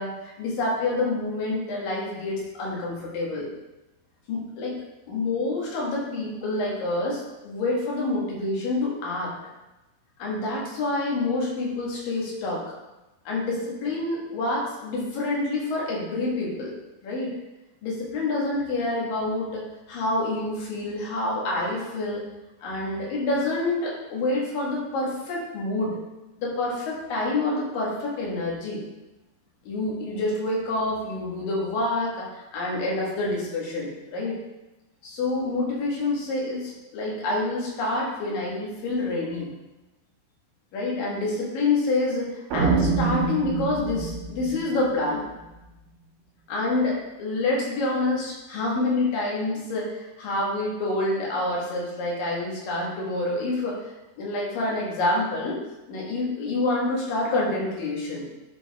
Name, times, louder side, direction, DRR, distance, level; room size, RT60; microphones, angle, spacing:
voice 1, 0.0-3.5 4.3-4.8 5.1-9.3 10.2-12.7 13.2-16.7 17.0-17.3 17.8-22.2 22.6-26.0 26.4-28.8 29.6-34.4 35.0-39.5 40.7-45.2 46.5-53.8 54.2-55.6 55.9-58.2, left 2 dB, 85° left, -4 dB, 3.4 m, -27 dB
sound 1, 42.5-45.6, right 4 dB, 90° right, 2.7 m, -26 dB
10.5 x 4.8 x 3.5 m, 1.0 s
omnidirectional pair, 3.8 m